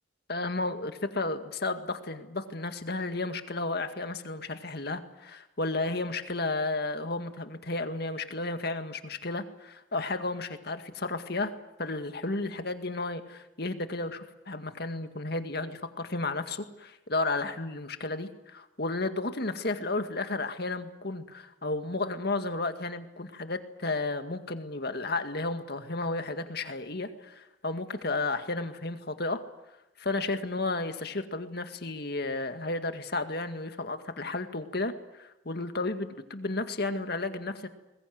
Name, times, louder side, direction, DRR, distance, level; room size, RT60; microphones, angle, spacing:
voice 1, 0.3-11.5 11.8-29.4 30.0-37.7, left 2 dB, 55° left, 8 dB, 2.0 m, -33 dB
21.5 x 21.0 x 9.4 m, 0.94 s
head